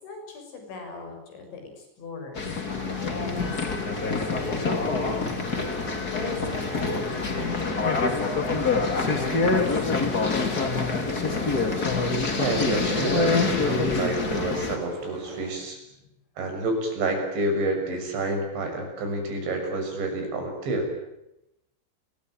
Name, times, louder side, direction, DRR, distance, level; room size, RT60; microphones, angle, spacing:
voice 1, 0.0-2.5 3.1-5.3 6.1-8.5 9.0-10.6 16.0-16.1, left 3 dB, 75° left, 4 dB, 9.0 m, -39 dB
sound 1, 2.4-14.8, left 4 dB, 25° left, 2.7 m, -26 dB
sound 2, 2.7-15.5, right 1 dB, 10° right, 7.6 m, -42 dB
voice 2, 12.4-15.8 16.4-20.9, right 2 dB, 70° right, 4 dB, 8.7 m, -28 dB
29.5 x 22.0 x 9.2 m, 0.87 s
omnidirectional pair, 5.3 m